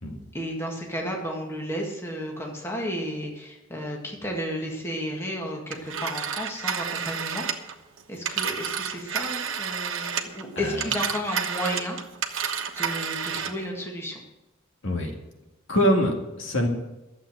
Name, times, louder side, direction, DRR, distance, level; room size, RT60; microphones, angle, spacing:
voice 1, 0.3-7.4 8.1-12.0 12.8-14.2, equal, 15° left, 0 dB, 1.8 m, -32 dB
Telephone, 5.7-10.4 10.7-13.6, right 7 dB, 75° right, 1.1 m, -30 dB
voice 2, 15.7-16.7, equal, 70° left, 1 dB, 2.2 m, -24 dB
12.0 x 7.6 x 7.7 m, 0.99 s
head